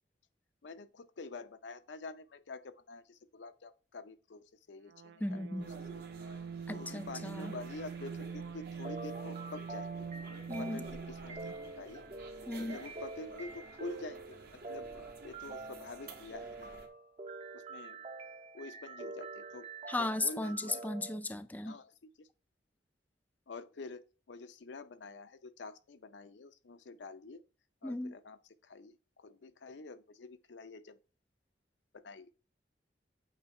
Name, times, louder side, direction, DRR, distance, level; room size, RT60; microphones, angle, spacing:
voice 1, 0.6-5.5 5.9-6.1 6.7-10.1 10.6-12.0 12.6-16.8 17.5-18.0 18.5-19.7 20.0-21.0 21.5-22.3 23.5-27.4 27.8-31.0 31.9-32.3, left 3 dB, 85° left, 0.6 m, -48 dB
sound 1, 4.9-11.7, right 6 dB, 75° right, 0.4 m, -44 dB
voice 2, 5.2-5.7 6.7-7.5 10.5-10.8 12.5-12.8 19.9-21.8 27.8-28.1, left 2 dB, 10° left, 0.3 m, -36 dB
sound 2, 5.6-16.9, right 3 dB, 60° right, 1.1 m, -52 dB
sound 3, 8.8-21.2, right 3 dB, 35° right, 0.6 m, -46 dB
8.2 x 2.8 x 4.4 m
head